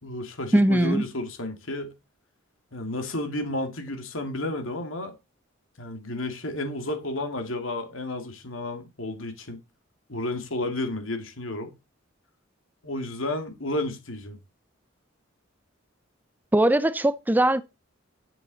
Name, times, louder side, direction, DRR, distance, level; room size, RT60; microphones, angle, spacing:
voice 1, 0.0-1.9 2.7-5.1 5.8-9.6 10.1-11.7 12.8-14.4, left 1 dB, 90° left, 2.3 m, -32 dB
voice 2, 0.5-1.0 16.5-17.6, right 1 dB, 10° right, 0.4 m, -20 dB
10.0 x 7.5 x 4.1 m
head